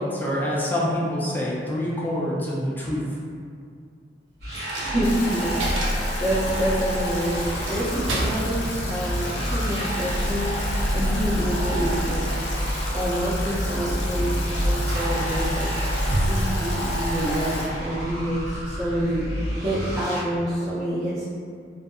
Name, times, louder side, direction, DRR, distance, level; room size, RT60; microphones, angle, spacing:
voice 1, 0.0-3.2, equal, 10° left, -6 dB, 0.5 m, -26 dB
sound 1, 4.4-20.2, equal, 60° right, 0.9 m, -29 dB
Coin (dropping), 4.5-18.3, equal, 90° right, 0.5 m, -31 dB
voice 2, 4.8-12.2 12.9-19.2 19.6-21.2, right 1 dB, 35° right, -15 dB, 0.8 m, -27 dB
Stream / Drip / Trickle dribble, 5.0-17.7, left 2 dB, 75° left, 0.5 m, -34 dB
2.5 x 2.4 x 2.4 m, 2.2 s
head